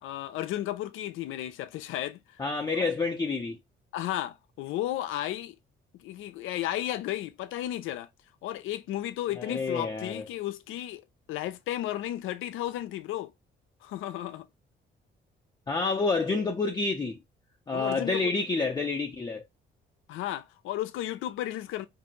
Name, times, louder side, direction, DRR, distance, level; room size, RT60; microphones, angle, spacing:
voice 1, 0.0-2.4 2.7-2.9 3.9-5.5 6.0-8.1 8.4-11.0 11.3-13.3 13.8-14.5 17.7-18.3 20.1-21.9, left 13 dB, 85° left, 0.4 m, -34 dB
voice 2, 2.4-3.6 9.4-10.2 15.7-17.2 17.7-19.4, left 3 dB, 20° left, 0.5 m, -28 dB
2.6 x 2.6 x 2.8 m
cardioid pair, 90°, 20 cm